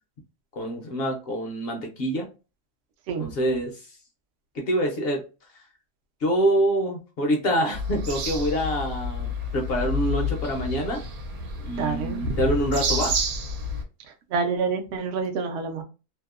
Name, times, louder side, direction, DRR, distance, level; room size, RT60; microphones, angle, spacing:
voice 1, 0.6-2.3 3.2-3.7 4.5-5.2 6.2-11.0 11.6-13.1, right 1 dB, 60° left, 0.7 m, -26 dB
sound 1, 7.7-13.8, left 1 dB, 85° right, 1.1 m, -29 dB
voice 2, 11.7-12.3 14.3-15.8, right 4 dB, 65° right, 0.7 m, -27 dB
2.7 x 2.0 x 2.3 m
omnidirectional pair, 1.5 m